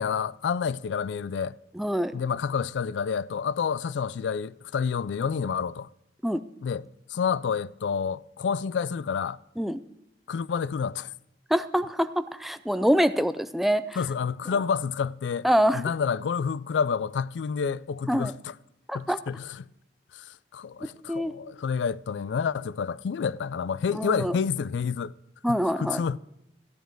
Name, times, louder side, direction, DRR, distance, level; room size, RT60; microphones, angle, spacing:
voice 1, 0.0-1.6 2.1-5.9 6.6-9.4 10.3-11.1 14.0-15.5 15.7-18.5 18.9-19.7 20.1-25.1 25.5-26.2, left 6 dB, 85° left, 0.4 m, -29 dB
voice 2, 1.8-2.1 6.2-6.4 9.6-9.8 11.5-14.0 15.4-15.8 18.1-18.3 18.9-19.2 21.1-21.3 23.9-24.4 25.4-26.0, equal, ahead, 0.4 m, -25 dB
14.0 x 10.0 x 4.5 m
head